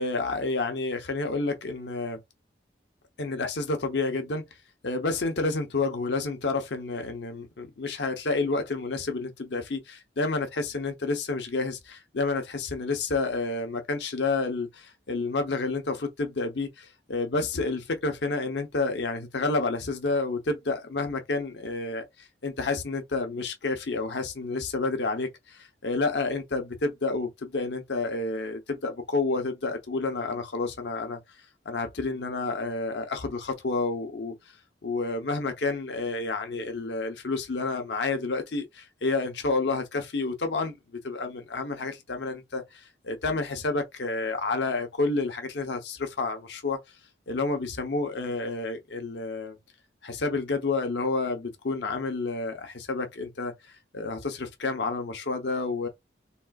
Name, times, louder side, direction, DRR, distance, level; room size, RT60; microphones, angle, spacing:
voice 1, 0.0-2.2 3.2-4.5 4.8-31.2 31.6-34.3 34.8-46.8 47.3-49.6 50.0-55.9, left 3 dB, 75° left, 0.7 m, -30 dB
3.7 x 2.3 x 2.3 m
head